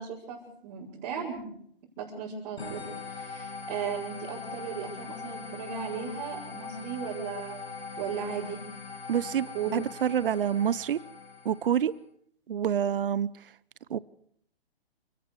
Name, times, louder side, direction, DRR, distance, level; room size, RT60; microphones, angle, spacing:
voice 1, 0.0-1.5 2.0-7.7 8.0-8.6 9.5-9.7, right 7 dB, 35° right, 6.2 m, -36 dB
sound 1, 2.6-11.9, left 4 dB, 85° left, 6.9 m, -41 dB
voice 2, 9.1-11.0 11.4-11.9 12.5-13.3 13.9-14.0, right 9 dB, 60° right, 0.9 m, -27 dB
29.5 x 18.0 x 4.9 m
hypercardioid pair, 140°, 31 cm